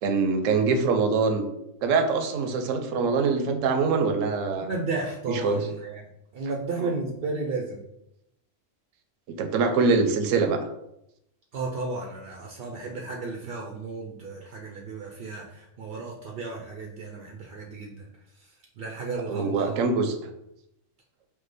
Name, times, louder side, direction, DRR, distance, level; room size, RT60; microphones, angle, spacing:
voice 1, 0.0-1.5 1.8-4.7 5.3-5.7 6.8-6.9 9.4-10.6 19.3-20.2, right 4 dB, 75° right, 7 dB, 1.0 m, -24 dB
voice 2, 4.6-6.0 6.3-7.8 11.5-18.1 18.8-19.8, right 3 dB, 60° right, 0 dB, 0.6 m, -33 dB
4.9 x 2.2 x 4.0 m, 0.82 s
omnidirectional pair, 1.4 m